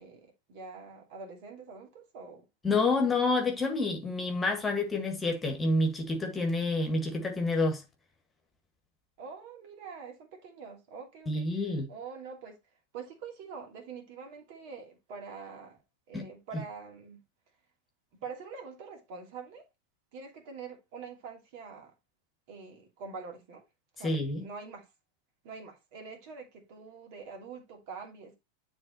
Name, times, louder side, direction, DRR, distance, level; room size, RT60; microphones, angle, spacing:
voice 1, 0.0-2.4 9.2-12.6 12.9-15.8 16.1-17.2 18.2-19.7 20.1-21.9 22.5-23.6 24.0-24.9 25.4-28.4, right 5 dB, 45° right, 2.6 m, -45 dB
voice 2, 2.6-7.8 11.3-11.9 16.1-16.3 16.5-16.6 24.0-24.5, left 2 dB, 15° left, 1.9 m, -28 dB
11.0 x 3.7 x 4.4 m
figure-of-eight pair, 90°, 0 cm